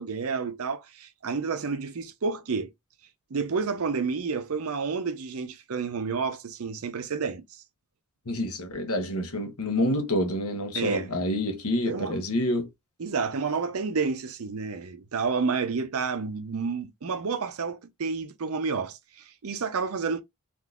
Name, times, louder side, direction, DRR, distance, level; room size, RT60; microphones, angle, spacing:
voice 1, 0.0-2.7 3.3-7.6 10.7-11.1 11.9-12.1 13.0-20.2, right 5 dB, 80° right, 0.6 m, -30 dB
voice 2, 8.3-12.7, left 1 dB, 85° left, 1.0 m, -27 dB
3.6 x 2.6 x 2.3 m
head